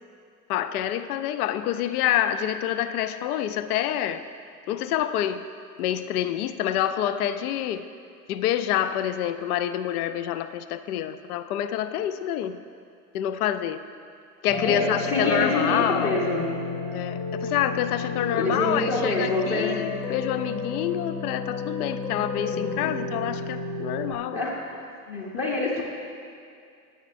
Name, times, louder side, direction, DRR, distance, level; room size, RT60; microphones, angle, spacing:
voice 1, 0.5-4.2 4.7-5.4 5.8-7.8 8.3-12.6 13.1-13.8 14.4-16.2 16.9-24.4, left 11 dB, 70° left, 12 dB, 0.5 m, -27 dB
sound 1, 14.5-24.2, left 3 dB, 10° left, 0.5 m, -32 dB
voice 2, 14.6-16.5 18.3-19.9 22.8-22.9 24.3-24.6 25.1-25.8, left 2 dB, 30° left, -3 dB, 1.0 m, -26 dB
9.4 x 8.8 x 2.6 m, 2.4 s
hypercardioid pair, 85°, 47 cm